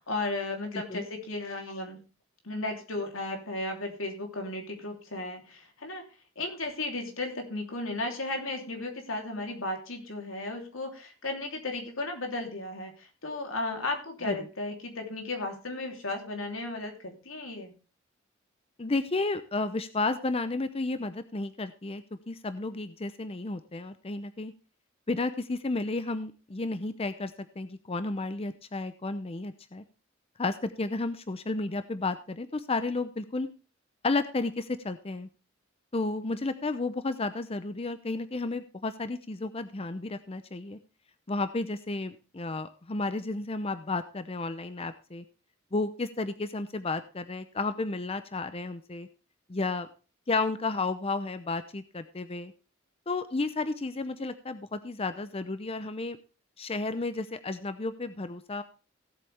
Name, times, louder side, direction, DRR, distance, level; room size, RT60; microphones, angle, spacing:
voice 1, 0.1-2.0 2.4-6.0 6.3-17.7, left 2 dB, 85° left, 3 dB, 3.2 m, -35 dB
voice 2, 18.8-24.5 25.1-29.8 30.4-33.5 34.0-35.3 35.9-40.8 41.3-45.2 45.7-49.1 49.5-49.9 50.3-52.5 53.1-56.2 56.6-58.6, left 3 dB, 30° left, 11 dB, 0.7 m, -32 dB
17.0 x 8.3 x 3.4 m, 0.35 s
head